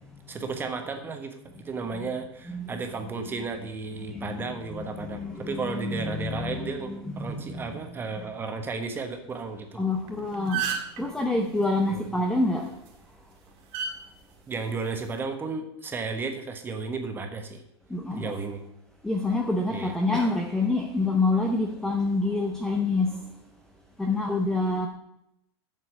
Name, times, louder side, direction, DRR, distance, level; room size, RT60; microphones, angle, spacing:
voice 1, 0.3-1.4 1.6-9.8 11.9-12.1 14.5-17.6 18.1-18.6 19.7-19.9, right 4 dB, 15° right, 1.3 m, -34 dB
voice 2, 4.1-4.5 4.7-7.6 9.8-10.6 11.0-12.7 17.9-18.3 19.0-23.2 24.0-24.9, left 2 dB, 5° left, 0.7 m, -27 dB
sound 1, 10.0-10.1 10.3-11.0 12.6-12.9 13.7-13.9 14.9-15.2, right 8 dB, 50° right, 2.4 m, -29 dB
8.1 x 6.8 x 6.1 m
supercardioid pair, 140°, 14 cm